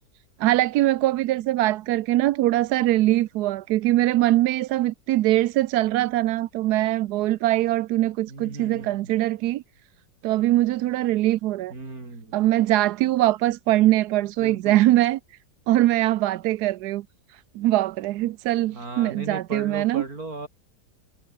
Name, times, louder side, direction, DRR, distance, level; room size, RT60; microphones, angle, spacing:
voice 1, 0.4-9.6 10.2-11.7 12.3-15.2 15.7-17.0 17.3-20.0, right 15 dB, 70° right, 1.1 m, -22 dB
voice 2, 8.3-9.2 11.7-12.4 14.4-14.8 18.7-20.5, right 2 dB, 55° right, 5.7 m, -37 dB
omnidirectional pair, 1.9 m